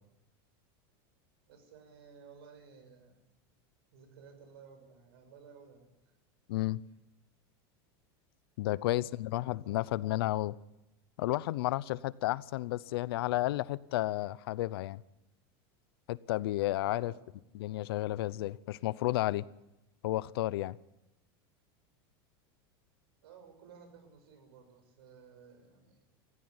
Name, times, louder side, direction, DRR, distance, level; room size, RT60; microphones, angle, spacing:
voice 1, 1.5-3.3 3.9-6.1 6.8-6.9 8.6-9.8 16.8-17.5 23.2-26.1, right 6 dB, 80° right, 6 dB, 6.9 m, -56 dB
voice 2, 6.5-6.8 8.6-10.5 11.2-15.0 16.1-17.1 17.5-19.4 20.0-20.8, left 16 dB, 80° left, 20 dB, 0.7 m, -32 dB
20.0 x 15.0 x 9.6 m, 0.92 s
supercardioid pair, 170°, 13 cm